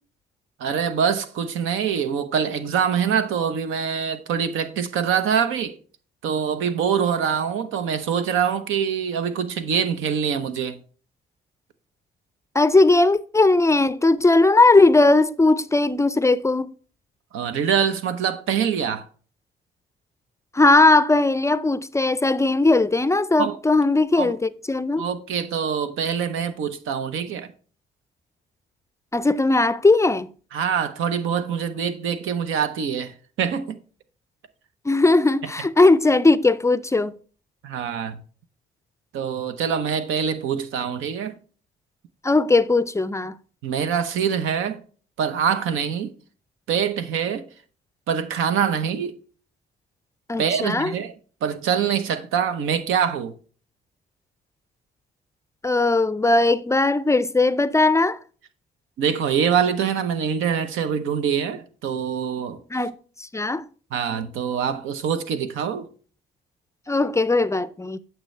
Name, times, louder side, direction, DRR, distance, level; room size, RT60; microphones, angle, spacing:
voice 1, 0.6-5.8 6.2-10.8 17.3-19.1 23.4-23.6 24.2-24.3 25.0-27.5 30.5-33.8 37.6-38.2 39.1-41.3 43.6-44.8 45.2-46.1 46.7-47.5 48.1-49.2 50.4-51.1 51.4-53.3 59.0-62.6 63.9-65.9, right 7 dB, 85° right, 0.9 m, -24 dB
voice 2, 12.5-16.7 20.5-25.0 29.1-30.3 34.8-37.1 42.2-43.3 50.3-50.9 55.6-58.2 62.7-63.6 66.9-68.0, left 2 dB, 15° left, 0.4 m, -18 dB
9.0 x 6.9 x 3.3 m
cardioid pair, 90°, 20 cm